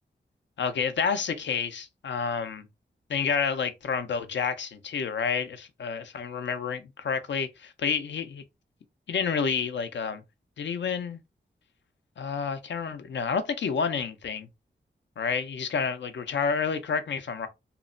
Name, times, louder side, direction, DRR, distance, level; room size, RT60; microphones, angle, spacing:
voice 1, 0.6-2.7 3.1-8.4 9.1-10.2 10.6-11.2 12.2-14.5 15.2-17.5, left 6 dB, 75° left, 0.5 m, -29 dB
2.9 x 2.0 x 2.5 m
cardioid pair, 50°, 19 cm